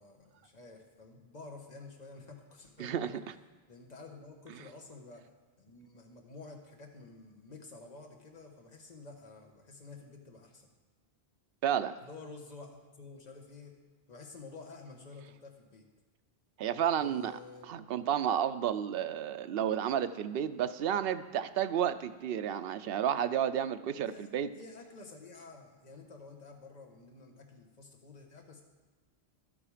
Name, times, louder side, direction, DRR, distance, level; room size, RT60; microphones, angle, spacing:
voice 1, 0.0-3.2 3.7-5.3 5.6-10.7 12.0-13.7 14.1-15.9 17.0-17.9 24.0-28.6, left 3 dB, 40° left, 2 dB, 1.5 m, -50 dB
voice 2, 11.6-12.0 16.6-17.3 17.7-24.5, right 9 dB, 70° right, 11 dB, 0.8 m, -31 dB
12.0 x 8.7 x 5.0 m, 1.3 s
omnidirectional pair, 1.1 m